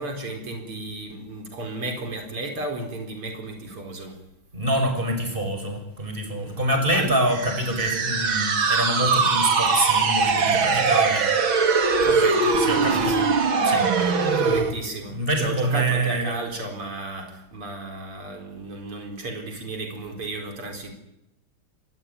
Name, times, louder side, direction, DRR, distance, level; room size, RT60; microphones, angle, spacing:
voice 1, 0.0-4.2 6.4-6.6 6.9-7.2 12.0-13.3 14.4-20.9, right 2 dB, 85° right, 4 dB, 5.0 m, -33 dB
voice 2, 4.5-11.3 12.6-13.2 13.6-13.9 15.1-16.4, right 1 dB, 25° right, 5 dB, 6.1 m, -25 dB
sound 1, 7.3-14.7, right 4 dB, 65° right, 3.1 m, -21 dB
25.5 x 21.0 x 9.6 m, 0.86 s
omnidirectional pair, 2.4 m